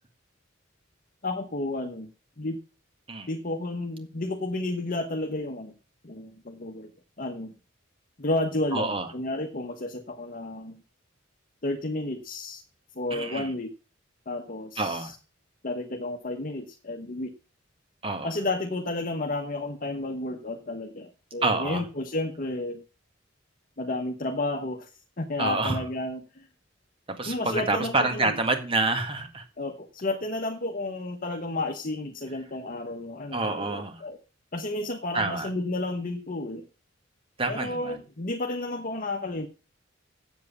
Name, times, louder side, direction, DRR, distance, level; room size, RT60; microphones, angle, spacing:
voice 1, 1.2-2.1 2.4-2.6 3.3-5.7 6.0-6.9 7.2-7.5 8.2-10.8 11.6-12.6 13.0-13.7 14.3-15.1 15.6-17.3 18.2-22.8 23.8-24.9 25.2-26.5 27.2-28.3 29.6-34.2 34.5-36.6 37.5-39.5, left 2 dB, 45° left, 4 dB, 1.0 m, -32 dB
voice 2, 8.7-9.1 13.1-13.5 14.8-15.1 18.0-18.3 21.4-21.9 25.4-25.8 27.1-29.4 33.3-34.0 35.1-35.5 37.4-38.0, right 3 dB, 25° right, 6 dB, 1.9 m, -28 dB
8.1 x 7.6 x 7.0 m, 0.34 s
head